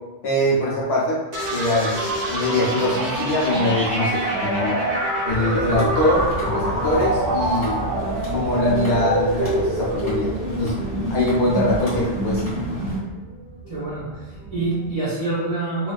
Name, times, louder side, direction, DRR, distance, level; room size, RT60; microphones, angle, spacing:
voice 1, 0.2-1.2 1.5-4.8 5.2-7.8 8.3-10.3 10.6-12.5, left 1 dB, 65° left, -5 dB, 0.8 m, -23 dB
sound 1, 1.3-14.9, right 1 dB, 75° right, 0.9 m, -26 dB
sound 2, 5.3-13.0, equal, 5° left, 1.1 m, -32 dB
voice 2, 13.7-15.9, right 2 dB, 35° right, -11 dB, 0.8 m, -26 dB
2.4 x 2.3 x 2.2 m, 1.2 s
omnidirectional pair, 1.3 m